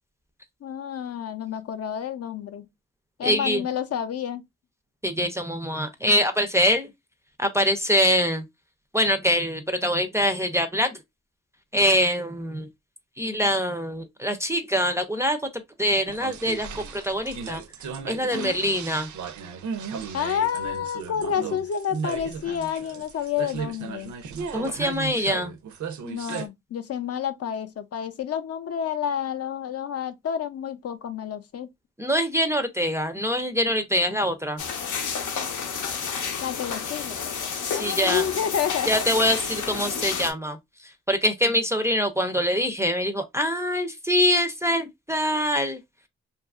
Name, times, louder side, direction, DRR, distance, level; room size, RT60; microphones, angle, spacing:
voice 1, 0.6-2.7 3.2-4.4 18.3-18.6 20.1-24.1 26.0-31.7 36.4-38.9, left 8 dB, 55° left, 0.4 m, -29 dB
voice 2, 3.2-3.6 5.0-6.9 7.4-8.4 8.9-10.9 11.7-12.7 13.2-15.4 15.8-17.6 18.1-19.1 24.5-25.5 32.0-34.6 37.7-38.2 38.9-40.6 41.1-45.8, equal, 10° right, 0.4 m, -24 dB
sound 1, 16.1-26.5, right 6 dB, 75° right, 0.5 m, -35 dB
sound 2, 34.6-40.3, left 6 dB, 90° left, 0.6 m, -30 dB
2.7 x 2.4 x 2.3 m
wide cardioid pair, 110°, 30 cm